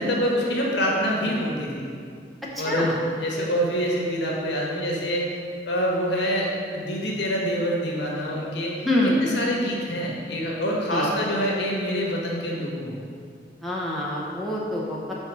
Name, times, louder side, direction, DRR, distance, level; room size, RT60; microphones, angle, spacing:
voice 1, 0.0-1.9 2.6-5.3 5.7-8.7 9.2-12.9, equal, 80° left, -3 dB, 1.4 m, -26 dB
voice 2, 2.5-3.0 8.8-9.2 10.9-11.1 13.6-15.1, left 1 dB, ahead, -6 dB, 0.8 m, -25 dB
5.7 x 4.2 x 6.1 m, 2.2 s
head